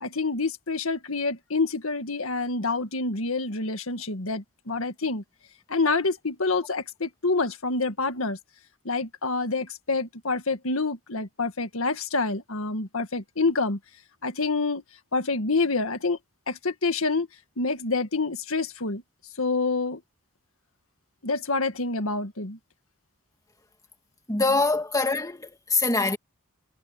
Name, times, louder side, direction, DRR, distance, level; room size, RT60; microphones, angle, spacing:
voice 1, 0.0-5.2 5.7-8.4 8.9-13.8 14.2-14.8 15.1-16.2 16.5-17.3 17.6-19.0 19.4-20.0 21.2-22.6, left 3 dB, 70° left, 1.9 m, -27 dB
voice 2, 24.3-26.2, left 3 dB, 15° left, 2.2 m, -24 dB
head